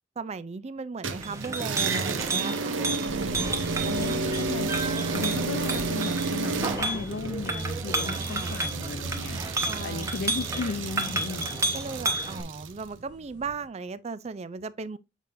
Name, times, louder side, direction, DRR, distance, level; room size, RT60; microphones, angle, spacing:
voice 1, 0.2-2.8 3.7-4.2 8.0-8.6 9.7-10.1 11.7-15.0, right 4 dB, 35° right, 0.4 m, -37 dB
sound 1, 1.0-12.8, right 3 dB, 80° right, 0.7 m, -32 dB
Chink clink, 1.1-12.4, right 2 dB, 15° right, 0.9 m, -32 dB
sound 2, 3.1-13.7, right 1 dB, 60° right, 1.5 m, -44 dB
voice 2, 3.8-4.7 5.1-11.5, left 4 dB, 60° left, 0.5 m, -35 dB
7.4 x 5.3 x 2.5 m
head